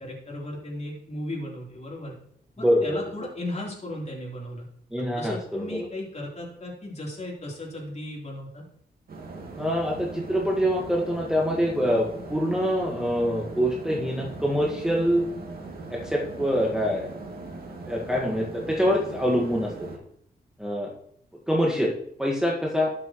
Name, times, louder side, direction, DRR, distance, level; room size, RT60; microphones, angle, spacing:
voice 1, 0.0-2.1 2.6-4.7 5.1-8.6, left 1 dB, 40° left, -3 dB, 3.7 m, -36 dB
voice 2, 2.6-3.0 4.9-5.9 9.6-15.2 15.9-17.1 17.9-19.7 20.6-20.9 21.5-21.9 22.2-22.9, equal, 5° right, -2 dB, 1.6 m, -25 dB
sound 1, 9.1-20.0, right 3 dB, 65° right, 2.4 m, -39 dB
12.5 x 7.6 x 3.1 m, 0.69 s
cardioid pair, 80°, 17 cm